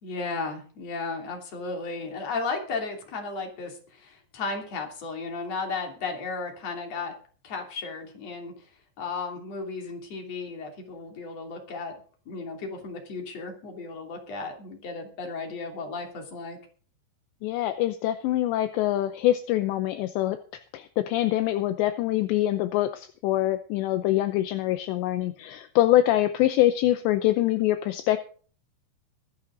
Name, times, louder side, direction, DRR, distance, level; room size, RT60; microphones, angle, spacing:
voice 1, 0.0-7.1 7.4-8.7 9.0-12.0 12.3-16.6, left 4 dB, 35° left, 2 dB, 3.4 m, -34 dB
voice 2, 17.4-20.4 20.7-28.2, left 14 dB, 80° left, 10 dB, 2.6 m, -24 dB
24.0 x 8.7 x 3.9 m, 0.42 s
omnidirectional pair, 5.8 m